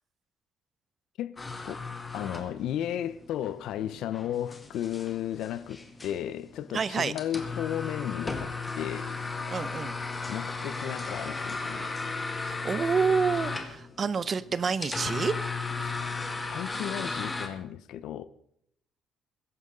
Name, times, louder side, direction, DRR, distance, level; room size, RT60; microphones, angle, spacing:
sound 1, 1.4-17.5, left 3 dB, 15° left, 1.7 m, -36 dB
voice 1, 2.1-9.1 10.3-12.3 15.8-16.0 16.5-18.2, left 11 dB, 70° left, 0.7 m, -34 dB
voice 2, 6.7-7.1 9.5-10.0 12.4-15.3, right 5 dB, 30° right, 0.7 m, -28 dB
21.5 x 11.0 x 3.8 m
cardioid pair, 170°, 0 cm